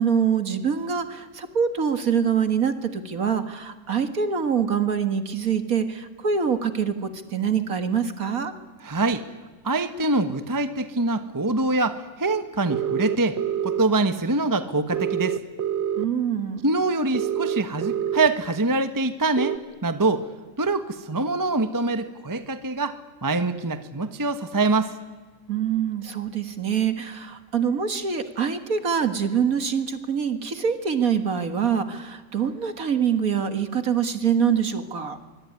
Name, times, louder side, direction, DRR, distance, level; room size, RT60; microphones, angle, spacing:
voice 1, 0.0-8.5 16.0-16.7 25.5-35.2, right 7 dB, 45° right, 9 dB, 2.0 m, -25 dB
voice 2, 8.8-9.3 9.6-13.4 13.6-15.4 16.6-20.3 20.6-24.9, right 2 dB, 15° right, 10 dB, 0.9 m, -24 dB
sound 1, 12.7-13.8 14.9-16.1 17.1-18.3 19.4-19.6, right 9 dB, 70° right, 1.9 m, -26 dB
24.0 x 23.0 x 9.7 m, 1.4 s
omnidirectional pair, 2.2 m